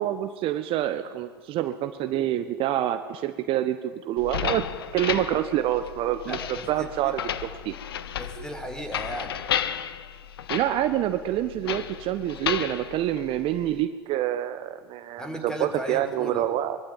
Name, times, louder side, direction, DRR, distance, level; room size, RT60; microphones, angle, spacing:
voice 1, 0.0-3.8 4.0-4.7 4.9-6.4 6.7-7.2 7.6-7.7 8.4-8.5 10.5-16.8, right 12 dB, 45° right, 10 dB, 1.3 m, -27 dB
sound 1, 4.2-13.8, left 10 dB, 75° left, 1.2 m, -33 dB
voice 2, 6.2-7.2 8.1-9.4 15.2-16.5, equal, 5° left, 6 dB, 5.1 m, -36 dB
24.5 x 22.0 x 9.4 m, 1.4 s
hypercardioid pair, 85°, 13 cm